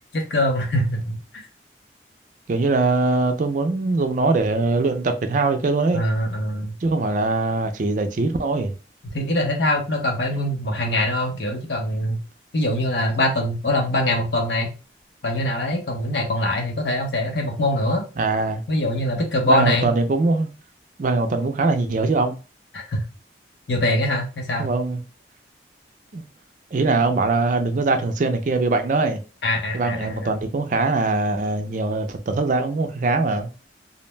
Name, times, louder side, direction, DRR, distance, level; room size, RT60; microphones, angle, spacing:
voice 1, 0.1-1.4 5.9-6.7 9.1-12.2 12.5-14.7 15.2-18.0 18.7-19.9 22.7-23.0 23.7-24.7 29.4-30.3, left 1 dB, 75° left, 0.8 m, -23 dB
voice 2, 2.5-6.0 6.8-8.7 18.2-18.6 19.5-20.5 21.0-22.4 24.6-25.0 26.1-26.2 26.7-29.2 29.7-33.5, right 3 dB, 45° right, 0.4 m, -22 dB
2.5 x 2.1 x 3.1 m
head